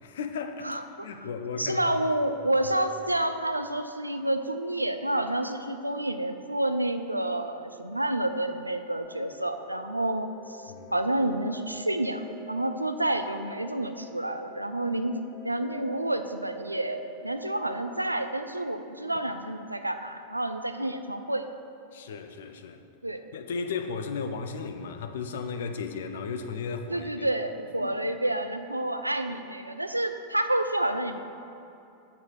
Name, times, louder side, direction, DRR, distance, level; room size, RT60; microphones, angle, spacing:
voice 1, 0.0-2.0 10.7-10.9 21.9-22.8 23.3-27.3 27.8-28.0, left 5 dB, 60° left, 7 dB, 0.5 m, -35 dB
voice 2, 0.6-1.1 1.6-21.5 23.0-23.2 26.9-31.2, right 1 dB, 85° right, 8 dB, 0.4 m, -29 dB
sound 1, 9.0-17.8, left 1 dB, 10° left, 0.7 m, -48 dB
7.1 x 4.1 x 6.4 m, 2.7 s
figure-of-eight pair, 90°, 0 cm